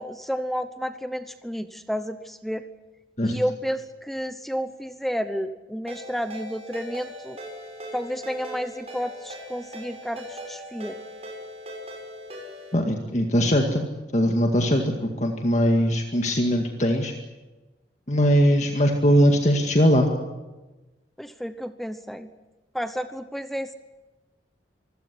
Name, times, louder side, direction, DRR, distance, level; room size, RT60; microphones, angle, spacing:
voice 1, 0.0-2.7 3.2-7.4 7.9-11.0 21.2-22.3 22.7-23.7, equal, ahead, 10 dB, 0.9 m, -31 dB
Ringtone, 5.9-12.7, equal, 35° right, 7.0 m, -40 dB
voice 2, 12.7-13.9 14.1-17.1 18.1-20.1, equal, 40° left, 3 dB, 2.0 m, -21 dB
25.0 x 16.5 x 9.9 m, 1.1 s
head